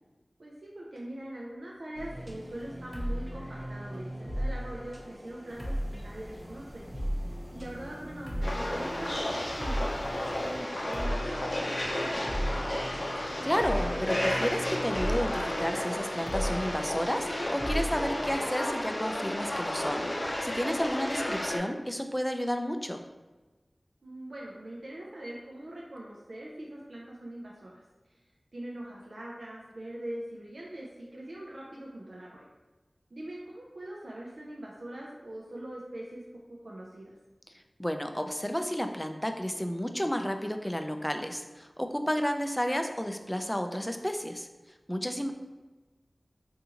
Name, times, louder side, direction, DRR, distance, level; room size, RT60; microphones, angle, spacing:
voice 1, 0.4-6.8 7.5-12.7 24.0-28.2 28.5-32.5 33.1-37.1 45.0-45.3, right 1 dB, 85° right, -4 dB, 0.4 m, -42 dB
sound 1, 1.9-18.3, equal, 15° right, 0.8 m, -37 dB
sound 2, 5.5-10.6, equal, 55° right, 1.1 m, -49 dB
sound 3, 8.4-21.6, left 1 dB, 65° left, 0.5 m, -32 dB
voice 2, 13.2-23.0 37.8-44.5 44.9-45.3, equal, 15° left, 6 dB, 0.3 m, -32 dB
3.7 x 2.6 x 2.8 m, 1.2 s
wide cardioid pair, 40°, 0 cm